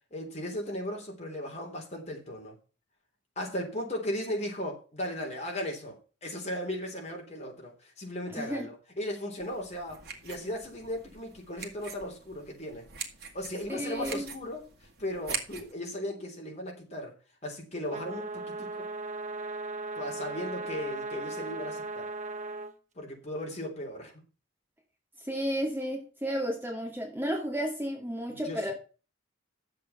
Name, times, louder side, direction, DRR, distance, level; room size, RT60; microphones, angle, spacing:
voice 1, 0.1-2.5 3.4-12.9 13.3-14.7 15.0-17.1 17.4-18.9 20.0-22.1 23.0-24.1 28.3-28.7, left 1 dB, 35° left, 1 dB, 3.4 m, -37 dB
voice 2, 8.4-8.7 13.7-14.3 25.3-28.7, equal, 10° right, 0 dB, 2.3 m, -32 dB
sound 1, 9.4-15.7, right 6 dB, 55° right, 2.2 m, -43 dB
sound 2, 17.9-22.7, right 3 dB, 40° right, 1.0 m, -37 dB
10.0 x 7.6 x 5.7 m, 0.35 s
head